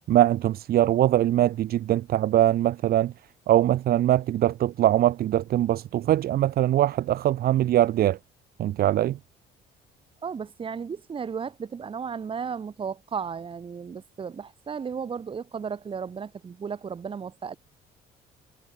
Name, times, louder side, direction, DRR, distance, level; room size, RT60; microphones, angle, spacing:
voice 1, 0.1-3.1 3.5-8.2 8.6-9.2, right 13 dB, 65° right, 2.0 m, -22 dB
voice 2, 10.2-17.6, right 6 dB, 30° right, 1.7 m, -34 dB
cardioid pair, 110°, 17 cm